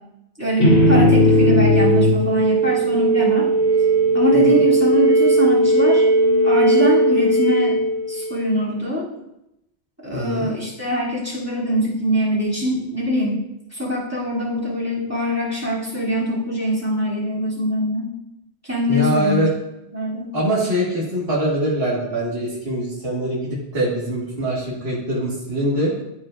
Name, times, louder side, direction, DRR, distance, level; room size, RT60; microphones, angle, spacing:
voice 1, 0.4-3.5 4.1-6.0 6.4-7.8 8.1-9.1 10.0-13.4 13.7-18.1 18.6-19.4 19.9-20.3, equal, 10° right, -8 dB, 2.5 m, -22 dB
sound 1, 0.6-8.5, right 1 dB, 90° left, 3.0 m, -17 dB
voice 2, 10.1-10.5 18.9-19.5 20.3-25.9, right 1 dB, 55° right, -6 dB, 1.8 m, -23 dB
12.5 x 5.1 x 2.4 m, 0.85 s
omnidirectional pair, 1.2 m